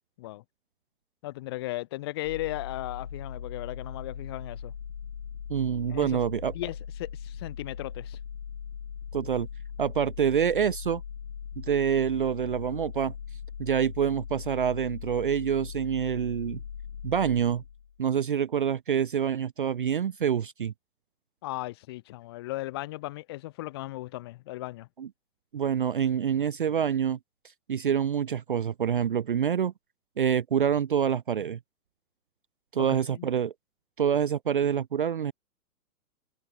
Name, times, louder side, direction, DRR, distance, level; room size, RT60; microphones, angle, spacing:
voice 1, 1.2-4.7 5.9-6.2 6.5-8.2 21.4-24.9 32.8-33.3, left 18 dB, 15° left, 1.2 m, -36 dB
sound 1, 2.2-18.0, left 7 dB, 80° left, 8.0 m, -40 dB
voice 2, 5.5-6.5 9.1-9.5 9.8-11.0 11.6-13.1 13.6-16.6 17.0-17.6 18.0-20.7 25.0-25.1 25.5-27.2 27.7-29.7 30.2-31.6 32.7-33.5 34.0-35.3, right 8 dB, 35° right, 0.8 m, -26 dB
hypercardioid pair, 180°, 46 cm